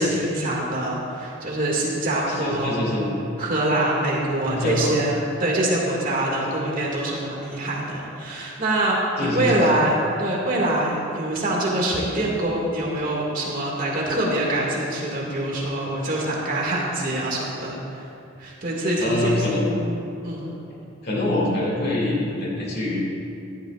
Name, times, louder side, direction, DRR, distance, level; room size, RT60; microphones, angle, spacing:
voice 1, 0.0-2.8 3.4-18.0 18.4-19.5 20.2-20.5, right 1 dB, 40° right, -4 dB, 2.1 m, -24 dB
voice 2, 2.4-3.1 4.5-4.9 9.2-9.6 19.0-19.7 21.0-23.0, left 1 dB, 50° left, -3 dB, 2.3 m, -24 dB
16.5 x 11.5 x 2.5 m, 2.6 s
head